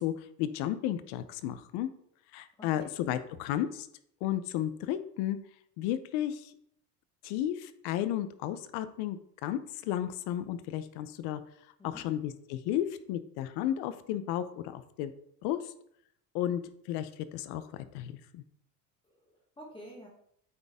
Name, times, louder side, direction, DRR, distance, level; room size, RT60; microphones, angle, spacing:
voice 1, 0.0-1.9 2.3-3.9 4.2-5.4 5.8-6.5 7.2-11.4 11.8-15.1 15.4-15.7 16.3-16.6 16.9-18.4, left 11 dB, 85° left, 12 dB, 0.7 m, -33 dB
voice 2, 2.6-2.9 11.8-12.1 19.0-20.1, equal, 15° left, -2 dB, 1.2 m, -49 dB
8.7 x 4.2 x 3.5 m, 0.70 s
cardioid pair, 170°, 38 cm